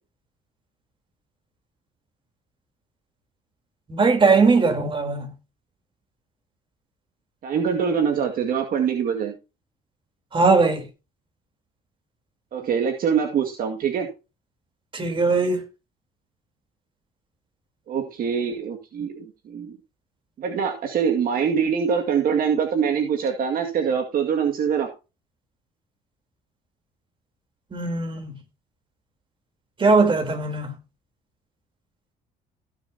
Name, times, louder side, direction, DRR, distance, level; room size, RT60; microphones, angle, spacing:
voice 1, 3.9-5.3 10.3-10.9 14.9-15.6 27.7-28.4 29.8-30.7, right 4 dB, 30° right, 3.6 m, -20 dB
voice 2, 7.4-9.3 12.5-14.1 17.9-19.8 20.4-24.9, right 7 dB, 60° right, 2.1 m, -24 dB
16.5 x 7.1 x 2.8 m
cardioid pair, 110°, 17 cm